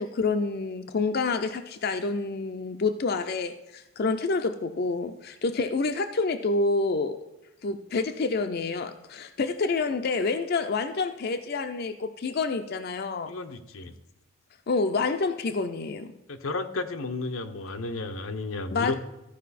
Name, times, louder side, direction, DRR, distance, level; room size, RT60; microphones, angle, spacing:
voice 1, 0.0-7.2 7.6-13.3 14.7-16.1 18.7-19.0, left 3 dB, 50° left, 8 dB, 0.5 m, -28 dB
voice 2, 13.3-13.9 16.3-19.0, left 3 dB, 85° left, 8 dB, 0.8 m, -33 dB
14.0 x 5.0 x 4.1 m, 0.98 s
head